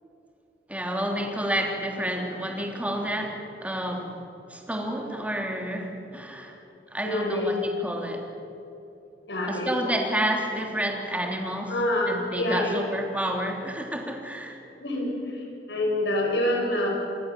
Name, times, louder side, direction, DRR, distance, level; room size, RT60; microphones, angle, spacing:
voice 1, 0.7-4.2 4.5-6.6 6.9-8.3 9.5-11.8 12.1-14.6, right 1 dB, 10° right, 1 dB, 3.3 m, -30 dB
voice 2, 7.0-7.5 9.3-9.7 11.7-12.8 14.8-16.9, left 1 dB, 80° left, -1 dB, 7.4 m, -27 dB
27.5 x 20.5 x 7.7 m, 2.9 s
head